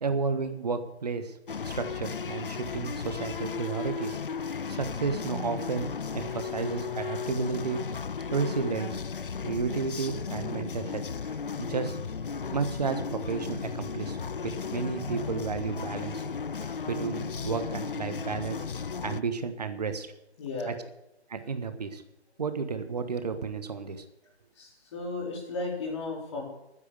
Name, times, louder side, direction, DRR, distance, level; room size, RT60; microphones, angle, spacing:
voice 1, 0.0-1.3 1.6-4.2 4.7-5.9 6.1-7.8 8.3-9.0 9.4-11.0 11.3-12.0 12.5-14.2 14.4-16.3 16.6-18.6 19.0-20.1 20.7-20.8 21.3-22.0 22.4-24.0, right 5 dB, 35° right, 10 dB, 1.3 m, -32 dB
sound 1, 1.5-19.2, left 6 dB, 55° left, 0.4 m, -35 dB
voice 2, 20.4-20.7 24.6-26.4, left 3 dB, 25° left, -2 dB, 4.3 m, -35 dB
13.0 x 9.7 x 8.0 m, 0.89 s
figure-of-eight pair, 150°, 33 cm